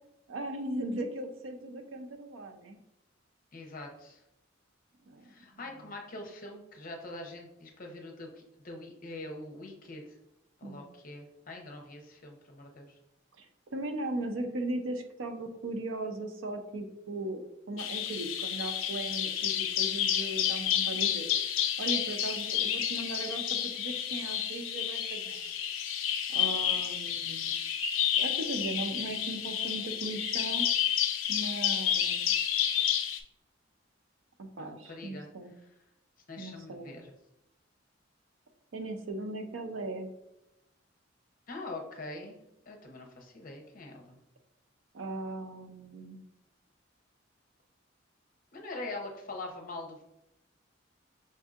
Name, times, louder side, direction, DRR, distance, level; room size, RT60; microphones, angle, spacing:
voice 1, 0.3-2.8 5.1-5.5 10.6-10.8 13.4-13.5 13.7-17.4 17.7-21.5 21.8-25.4 26.3-27.5 28.2-30.7 31.3-32.3 34.4-35.5 36.4-37.0 38.7-40.1 44.9-46.2, right 2 dB, 85° right, 6 dB, 0.5 m, -38 dB
voice 2, 3.5-4.2 5.2-10.2 10.6-13.0 34.6-35.3 35.6-35.7 36.3-37.1 41.5-42.4 42.7-44.2 48.5-50.0, left 2 dB, 45° left, 2 dB, 0.7 m, -43 dB
Bird vocalization bird call bird song, 17.8-33.2, left 9 dB, 90° left, 0.4 m, -30 dB
5.4 x 2.6 x 2.4 m, 0.85 s
head